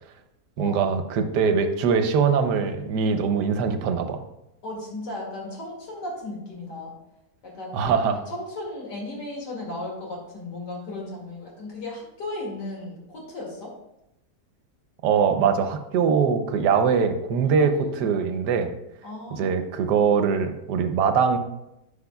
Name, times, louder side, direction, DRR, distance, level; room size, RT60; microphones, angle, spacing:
voice 1, 0.6-4.2 7.7-8.2 15.0-18.7 19.3-21.4, right 6 dB, 80° right, 7 dB, 1.3 m, -22 dB
voice 2, 4.6-6.9 7.4-7.8 8.1-13.7 17.4-18.1 19.0-19.5, left 2 dB, 90° left, -2 dB, 2.8 m, -35 dB
11.5 x 5.8 x 2.3 m, 0.89 s
omnidirectional pair, 1.8 m